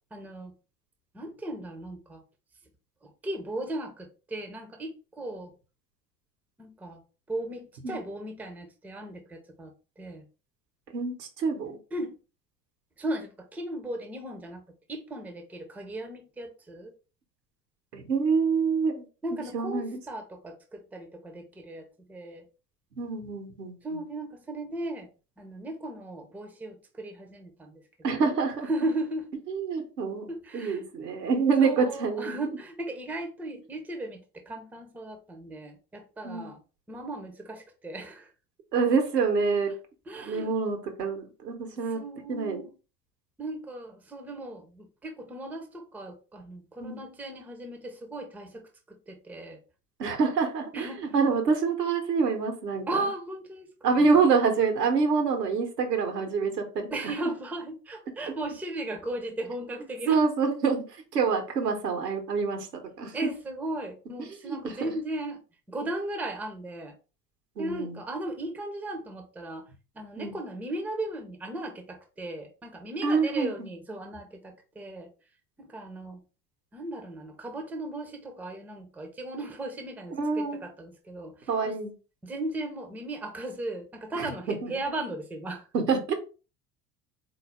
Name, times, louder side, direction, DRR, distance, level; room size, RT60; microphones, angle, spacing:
voice 1, 0.1-0.5 1.1-2.2 3.0-5.5 6.6-7.0 7.3-10.2 11.9-12.1 13.0-14.6 14.9-16.9 19.2-22.4 23.8-25.1 25.4-27.8 28.1-28.3 28.7-29.3 30.3-30.9 31.6-36.6 36.9-38.3 40.1-40.6 41.9-42.7 43.4-49.6 50.7-51.1 52.9-54.1 56.9-60.2 63.1-65.4 65.7-66.9 67.6-69.7 69.9-75.1 75.6-76.2 76.7-81.8 82.2-85.8, right 1 dB, 5° right, 0.5 m, -36 dB
voice 2, 10.9-11.8 17.9-19.0 19.3-20.0 23.0-24.0 28.0-28.7 29.5-32.4 36.2-36.5 38.7-39.7 40.2-42.0 42.3-42.6 46.8-47.0 50.0-52.8 53.8-57.1 60.1-60.8 61.1-62.7 63.0-63.1 64.4-64.9 67.6-68.0 70.2-70.4 73.0-73.7 80.2-80.6 81.5-81.9 84.1-84.3 84.6-84.7 85.7-86.1, right 5 dB, 75° right, 1.0 m, -26 dB
4.0 x 2.6 x 3.4 m
figure-of-eight pair, 65°, 49 cm